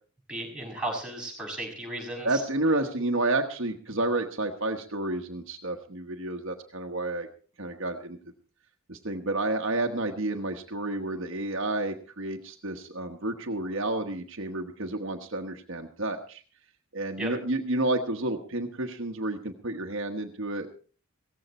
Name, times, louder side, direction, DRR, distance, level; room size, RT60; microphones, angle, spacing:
voice 1, 0.3-2.4 17.2-17.3, right 1 dB, 5° right, -2 dB, 6.1 m, -35 dB
voice 2, 2.2-7.3 7.6-8.2 8.9-16.4 16.9-20.7, right 2 dB, 60° right, 4 dB, 1.3 m, -30 dB
17.0 x 15.0 x 4.3 m, 0.40 s
head